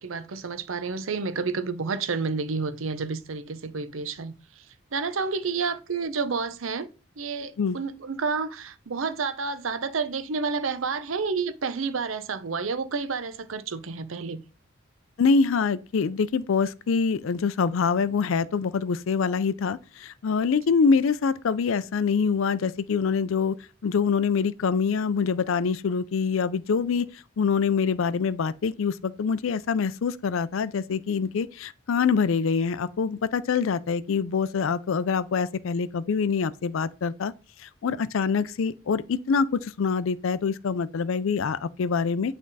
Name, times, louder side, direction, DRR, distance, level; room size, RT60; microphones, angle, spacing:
voice 1, 0.0-4.6 4.9-6.9 7.2-14.4, right 4 dB, 75° right, 0.7 m, -30 dB
voice 2, 15.2-23.6 23.8-27.1 27.4-37.3 37.6-42.4, left 5 dB, 75° left, 0.4 m, -25 dB
8.5 x 3.5 x 4.0 m
head